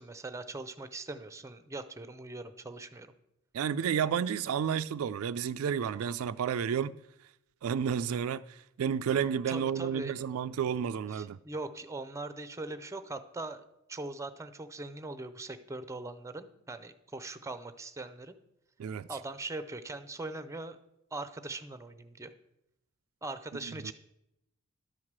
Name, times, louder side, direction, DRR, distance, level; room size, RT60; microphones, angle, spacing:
voice 1, 0.0-3.1 9.5-10.1 11.1-18.4 19.1-20.8 21.1-22.3 23.2-23.9, right 2 dB, 15° right, 0.6 m, -41 dB
voice 2, 3.5-7.0 7.6-11.4 18.8-19.1 23.7-23.9, right 7 dB, 70° right, 0.3 m, -31 dB
11.5 x 4.8 x 7.3 m
head